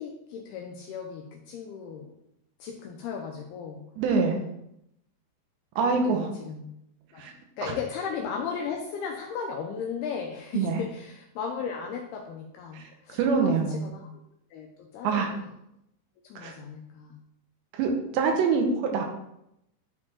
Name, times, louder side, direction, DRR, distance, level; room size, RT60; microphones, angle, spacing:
voice 1, 0.0-2.1 2.6-3.9 5.8-6.7 7.1-7.2 7.6-14.1 14.5-15.5 16.2-17.1, left 6 dB, 85° left, 2 dB, 2.3 m, -36 dB
voice 2, 4.0-4.4 5.8-6.3 7.2-7.3 10.5-10.8 12.7-12.8 13.1-13.9 15.0-15.3 16.4-16.5 17.7-19.0, right 5 dB, 75° right, 3 dB, 3.1 m, -25 dB
11.5 x 4.4 x 4.4 m, 0.81 s
omnidirectional pair, 5.5 m